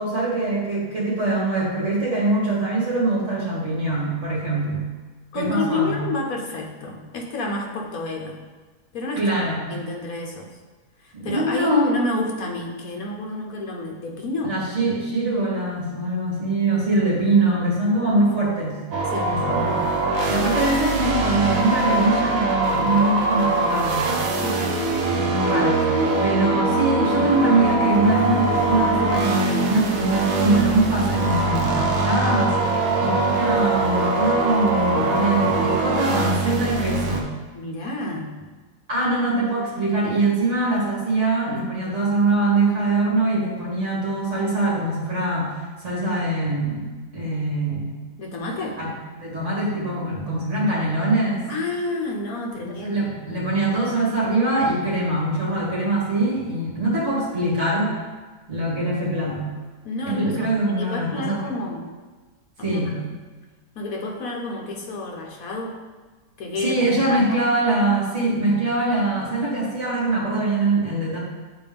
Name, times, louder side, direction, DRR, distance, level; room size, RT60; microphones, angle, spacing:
voice 1, 0.0-4.9 5.3-6.0 9.2-9.7 11.1-12.0 14.4-18.8 19.2-19.8 20.2-24.1 25.1-25.9 26.2-32.6 33.0-37.3 38.9-45.5 45.8-46.9 47.1-48.0 48.8-48.9 49.2-51.5 52.7-57.9 58.5-59.5 60.1-61.5 62.6-62.9 66.6-71.2, right 2 dB, 45° right, -6 dB, 2.6 m, -23 dB
voice 2, 5.3-8.4 8.9-10.5 11.0-14.6 19.1-19.3 20.4-20.5 24.4-24.7 32.7-32.9 37.5-38.5 48.2-48.8 51.5-53.5 59.8-61.9 62.6-63.0 63.7-65.8 66.4-67.4, left 2 dB, 65° left, 1 dB, 1.4 m, -30 dB
sound 1, 18.9-37.2, right 2 dB, 60° right, 1.3 m, -22 dB
9.7 x 4.5 x 3.5 m, 1.3 s
omnidirectional pair, 1.7 m